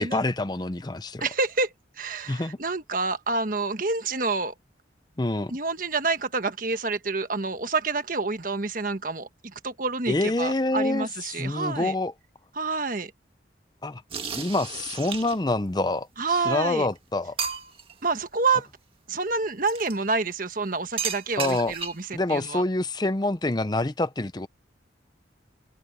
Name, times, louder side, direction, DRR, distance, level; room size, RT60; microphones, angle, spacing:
voice 1, 0.0-1.3 2.3-2.6 5.2-5.5 10.1-12.1 13.8-14.0 14.3-17.4 21.4-21.7 22.1-24.5, left 2 dB, 20° left, 0.6 m, -26 dB
voice 2, 1.2-1.7 2.0-4.5 5.5-11.9 12.6-13.1 16.2-16.9 18.0-18.7 19.1-22.6, right 3 dB, 45° right, 1.4 m, -28 dB
sound 1, 14.1-15.6 16.5-16.6 16.9-17.0 17.4-17.9 19.7-19.9 21.0-22.1, right 6 dB, 30° right, 2.0 m, -33 dB
head